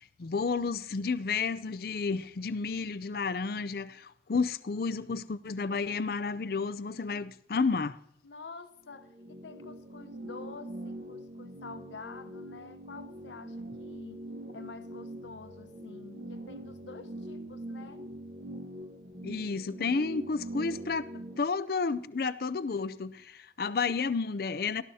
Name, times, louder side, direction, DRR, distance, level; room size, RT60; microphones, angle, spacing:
voice 1, 0.0-8.0 19.2-24.8, left 4 dB, 55° left, 0.5 m, -31 dB
voice 2, 8.2-18.1, left 3 dB, 85° left, 0.9 m, -48 dB
sound 1, 8.9-21.4, right 1 dB, 50° right, 1.1 m, -43 dB
18.0 x 13.5 x 2.8 m
head